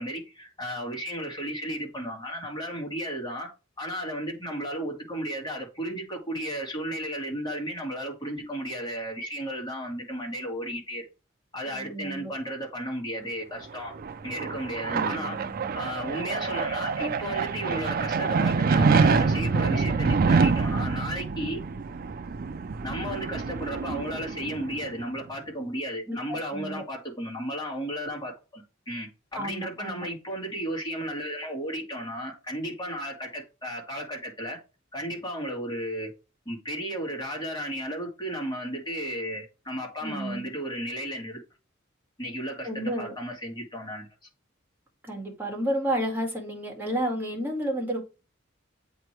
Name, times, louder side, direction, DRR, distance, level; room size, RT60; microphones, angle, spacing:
voice 1, 0.0-3.5 3.8-11.1 11.5-13.9 14.2-15.4 15.7-21.6 22.8-34.6 34.9-36.1 36.5-41.4 42.2-44.1, equal, 20° left, 2.4 m, -34 dB
voice 2, 11.7-12.3 14.9-15.7 26.1-26.8 29.3-30.1 40.0-40.5 42.6-43.2 45.0-48.0, right 1 dB, 10° right, 2.1 m, -31 dB
sound 1, 13.7-25.0, right 4 dB, 45° right, 0.4 m, -26 dB
8.0 x 3.1 x 4.5 m
head